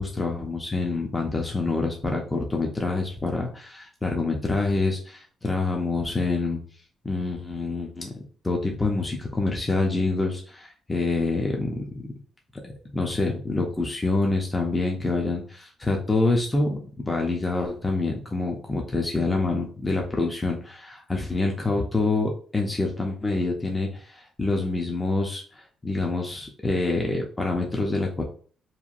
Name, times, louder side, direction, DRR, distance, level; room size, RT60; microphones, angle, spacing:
voice 1, 0.0-6.6 7.0-11.8 12.6-28.2, left 3 dB, 10° left, 0 dB, 0.4 m, -26 dB
2.8 x 2.2 x 2.4 m, 0.43 s
cardioid pair, 150°, 0 cm